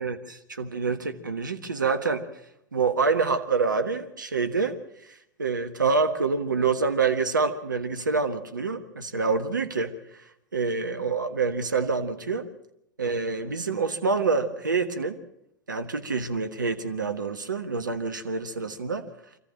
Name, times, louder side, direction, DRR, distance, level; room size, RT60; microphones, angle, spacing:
voice 1, 0.0-2.2 2.7-4.8 5.1-9.9 10.5-12.5 13.0-15.2 15.7-19.1, right 4 dB, 85° right, 8 dB, 1.4 m, -26 dB
26.0 x 14.5 x 7.6 m, 0.81 s
hypercardioid pair, 95°, 10 cm